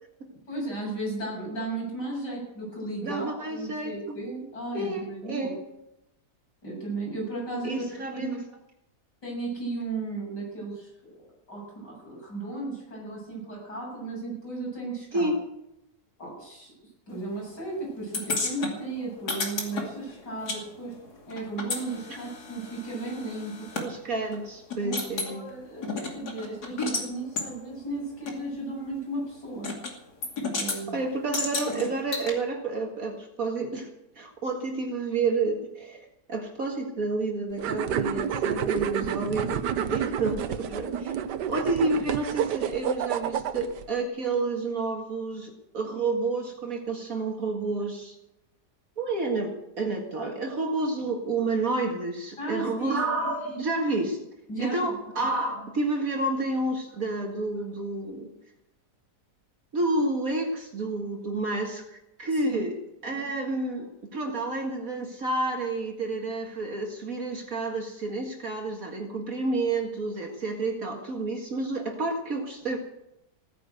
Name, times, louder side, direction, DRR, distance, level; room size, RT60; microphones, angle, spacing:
voice 1, 0.5-5.5 6.6-7.8 8.1-8.4 9.2-15.3 16.2-16.7 17.1-21.0 21.3-23.7 24.8-29.7 30.5-31.0 52.4-53.3 53.5-53.6 54.5-55.0 62.4-62.7, right 2 dB, 85° left, -3 dB, 8.2 m, -35 dB
voice 2, 3.0-4.2 4.7-5.6 7.6-8.4 15.1-15.4 23.8-25.5 30.9-33.9 34.2-39.6 39.9-41.1 41.5-48.2 49.0-49.5 49.8-54.2 54.6-58.3 59.7-62.8 63.0-72.8, right 2 dB, 55° right, 2 dB, 2.3 m, -30 dB
sound 1, 18.1-20.6 20.9-23.9 24.3-24.4 24.7-25.3 25.8-27.1 27.4-27.5 28.3-28.4 29.6-29.9 30.2-30.8 31.3-32.3, left 3 dB, 70° left, 3.0 m, -32 dB
sound 2, 37.6-43.8, right 9 dB, 90° right, 1.4 m, -29 dB
16.5 x 10.0 x 7.9 m, 0.87 s
omnidirectional pair, 1.8 m